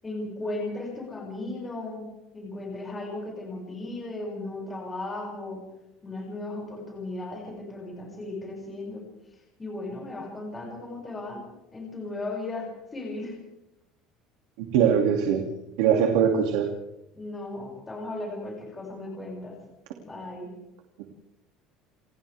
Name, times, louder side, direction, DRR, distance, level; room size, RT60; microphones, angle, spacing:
voice 1, 0.0-2.0 2.3-5.6 6.0-9.0 9.6-11.4 11.7-13.4 17.1-19.5 20.0-20.5, left 2 dB, 10° left, -3 dB, 6.9 m, -36 dB
voice 2, 14.6-15.5 15.8-16.7 21.0-21.1, right 8 dB, 85° right, 2 dB, 2.8 m, -22 dB
29.0 x 29.0 x 3.7 m, 0.91 s
cardioid pair, 180°, 0 cm